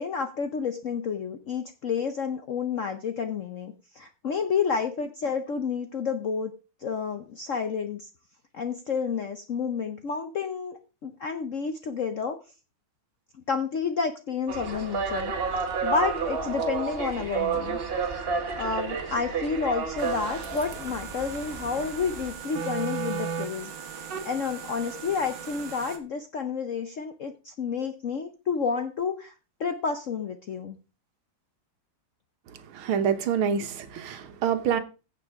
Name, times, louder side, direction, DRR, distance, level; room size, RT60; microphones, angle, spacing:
voice 1, 0.0-6.5 6.8-8.1 8.5-12.4 13.5-15.3 15.8-17.8 18.1-18.2 18.6-23.7 24.0-29.3 29.6-30.8, left 5 dB, 65° left, 0.8 m, -30 dB
sound 1, 14.5-22.3, right 5 dB, 35° right, 1.0 m, -31 dB
sound 2, 20.0-26.0, right 6 dB, 60° right, 1.9 m, -37 dB
voice 2, 32.7-34.8, right 7 dB, 85° right, 1.9 m, -26 dB
15.5 x 5.9 x 3.6 m
omnidirectional pair, 2.3 m